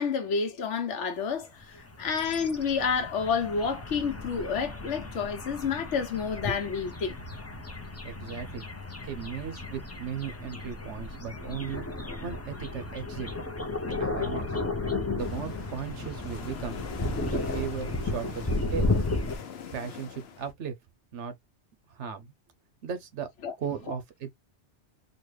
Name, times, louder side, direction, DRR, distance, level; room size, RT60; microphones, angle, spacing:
voice 1, 0.0-7.2 23.4-23.5 23.9-24.0, left 6 dB, 85° left, 1.1 m, -29 dB
sound 1, 1.6-19.4, left 2 dB, 20° left, 0.4 m, -34 dB
voice 2, 8.0-8.7 9.0-11.8 12.2-13.3 13.9-14.5 15.1-16.8 17.2-18.9 19.7-20.7 21.1-21.3 21.9-22.3 22.8-23.3 23.6-24.3, right 7 dB, 90° right, 1.2 m, -36 dB
sound 2, 15.2-20.5, left 8 dB, 65° left, 0.9 m, -43 dB
4.0 x 2.2 x 3.1 m
omnidirectional pair, 1.2 m